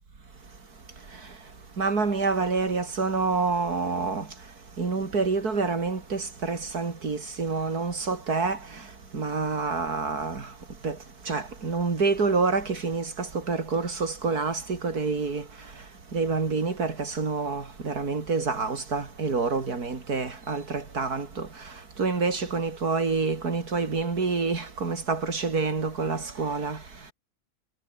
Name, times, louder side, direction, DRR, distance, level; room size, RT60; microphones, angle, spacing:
voice 1, 1.8-4.3 4.8-8.6 9.1-10.5 10.8-11.0 11.3-15.4 16.1-21.5 22.0-26.8, right 4 dB, 75° right, 3.4 m, -27 dB
omnidirectional pair, 1.6 m